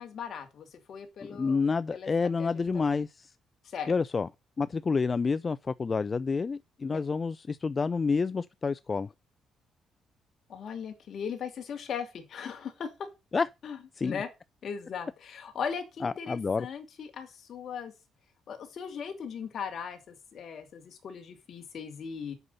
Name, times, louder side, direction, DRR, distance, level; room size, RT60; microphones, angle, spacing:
voice 1, 0.0-1.6 1.9-2.1 2.4-2.8 3.7-3.9 10.5-13.1 13.6-14.3 14.6-17.9 18.5-22.3, left 7 dB, 60° left, 2.5 m, -38 dB
voice 2, 1.3-3.3 3.9-4.3 4.6-9.1 13.3-13.5 14.0-14.2 16.0-16.7, left 4 dB, 35° left, 0.4 m, -29 dB
8.0 x 5.6 x 6.9 m
cardioid pair, 90°, 0 cm